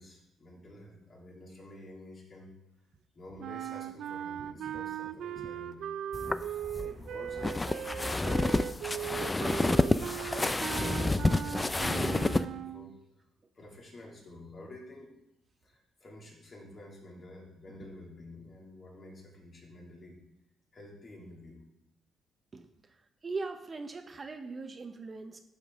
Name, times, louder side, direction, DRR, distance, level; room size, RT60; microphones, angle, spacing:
voice 1, 0.0-2.6 3.1-5.8 6.3-13.0 13.5-15.2 15.6-20.2 20.7-21.7, left 1 dB, 40° left, -1 dB, 2.4 m, -50 dB
sound 1, 3.4-12.9, right 10 dB, 75° right, 0.3 m, -38 dB
sound 2, 6.1-12.4, left 2 dB, 20° left, 0.4 m, -29 dB
voice 2, 22.5-23.0 23.2-25.4, right 3 dB, 35° right, 7 dB, 0.7 m, -41 dB
11.0 x 5.4 x 3.6 m, 0.87 s
cardioid pair, 90°, 0 cm